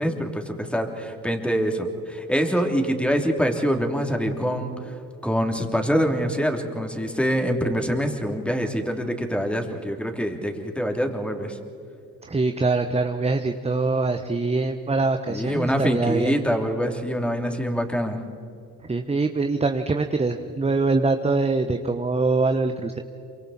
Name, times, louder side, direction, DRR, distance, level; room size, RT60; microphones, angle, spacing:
voice 1, 0.0-11.6 15.3-18.2, equal, 5° left, 3 dB, 3.1 m, -25 dB
voice 2, 12.2-16.4 18.9-23.0, right 3 dB, 15° right, 7 dB, 1.1 m, -23 dB
28.0 x 25.0 x 4.3 m, 2.7 s
hypercardioid pair, 50°, 41 cm